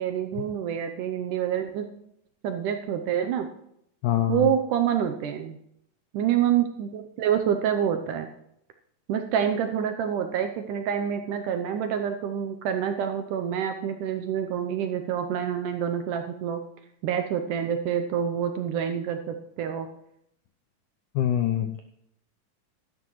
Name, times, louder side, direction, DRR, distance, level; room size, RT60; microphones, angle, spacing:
voice 1, 0.0-1.9 2.4-3.5 4.3-5.6 6.1-8.3 9.1-16.6 17.0-19.9, right 9 dB, 75° right, 6 dB, 2.0 m, -27 dB
voice 2, 4.0-4.5 21.2-21.8, left 11 dB, 85° left, 7 dB, 1.7 m, -24 dB
16.0 x 12.0 x 3.1 m, 0.74 s
omnidirectional pair, 4.3 m